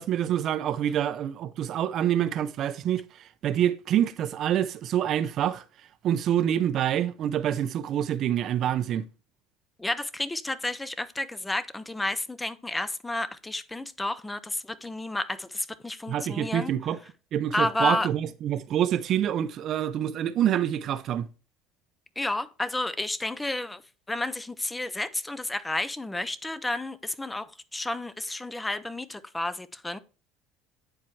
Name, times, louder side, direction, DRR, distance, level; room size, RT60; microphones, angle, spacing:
voice 1, 0.0-5.6 6.0-9.0 16.1-17.0 17.3-21.3, right 10 dB, 50° right, 0.5 m, -26 dB
voice 2, 9.8-16.7 17.5-18.1 22.2-23.8 24.1-30.0, left 2 dB, 10° left, 0.5 m, -31 dB
9.4 x 4.4 x 3.1 m
supercardioid pair, 115°, 0 cm